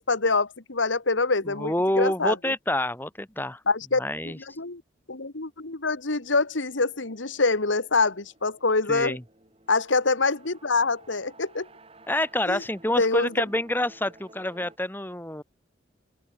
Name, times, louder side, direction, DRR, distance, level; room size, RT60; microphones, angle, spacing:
voice 1, 0.0-2.5 3.7-4.8 5.1-9.2 9.7-11.7 12.5-12.6 13.0-13.3, left 3 dB, 85° left, 1.8 m, -25 dB
voice 2, 1.4-3.6 4.0-4.4 8.9-9.2 12.1-15.4, left 1 dB, 10° left, 3.1 m, -27 dB
sound 1, 6.2-14.8, right 2 dB, 30° right, 6.7 m, -55 dB
open air
head